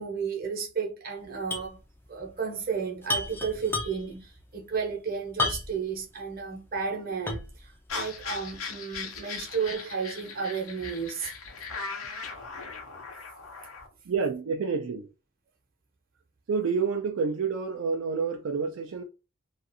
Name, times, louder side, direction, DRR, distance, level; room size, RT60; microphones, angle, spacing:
voice 1, 0.0-1.8 2.1-11.3, right 6 dB, 45° right, 0.8 m, -33 dB
sound 1, 1.5-1.8 2.0-2.1 3.0-4.2 5.4-5.9 6.4-6.5 7.3-7.6, left 2 dB, 10° left, 0.3 m, -31 dB
sound 2, 7.9-13.9, left 4 dB, 85° left, 0.7 m, -39 dB
voice 2, 14.1-15.1 16.5-19.0, right 5 dB, 70° right, 0.4 m, -28 dB
2.4 x 2.4 x 2.7 m
head